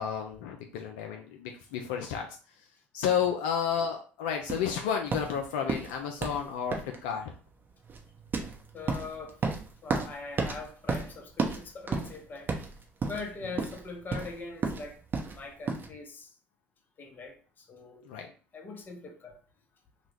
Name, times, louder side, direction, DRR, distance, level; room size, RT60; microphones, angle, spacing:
voice 1, 0.0-2.3 2.9-7.3 18.0-18.3, left 7 dB, 75° left, 0.4 m, -31 dB
sound 1, 4.5-15.9, right 4 dB, 35° right, 0.8 m, -34 dB
voice 2, 8.7-9.4 9.8-12.5 13.1-15.0 15.3-16.3 17.0-18.1 18.5-19.4, left 3 dB, 35° left, 0.8 m, -42 dB
2.8 x 2.3 x 3.2 m
hypercardioid pair, 70°, 6 cm